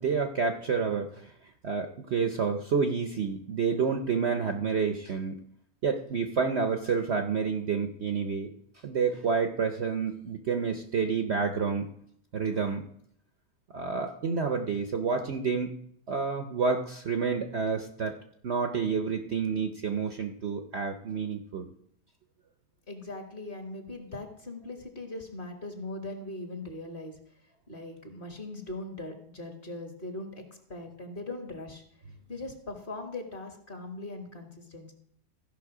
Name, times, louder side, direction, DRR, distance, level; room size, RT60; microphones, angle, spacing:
voice 1, 0.0-1.3 1.6-5.4 5.8-8.5 8.8-11.9 12.3-12.8 13.7-15.7 16.1-18.1 18.4-21.7, right 5 dB, 55° right, 6 dB, 0.8 m, -29 dB
voice 2, 22.9-27.2 27.7-30.4 30.7-31.8 32.3-34.9, left 2 dB, 35° left, 4 dB, 1.5 m, -40 dB
15.0 x 5.6 x 4.8 m, 0.70 s
omnidirectional pair, 1.8 m